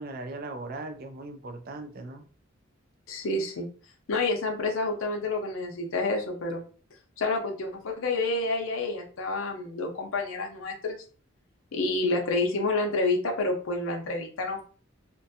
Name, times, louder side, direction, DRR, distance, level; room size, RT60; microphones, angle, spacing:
voice 1, 0.0-2.2, right 2 dB, 45° right, 7 dB, 0.4 m, -38 dB
voice 2, 3.1-3.7 4.1-6.6 7.2-11.0 11.7-14.6, left 2 dB, 75° left, 2 dB, 0.6 m, -29 dB
2.5 x 2.2 x 2.7 m, 0.41 s
head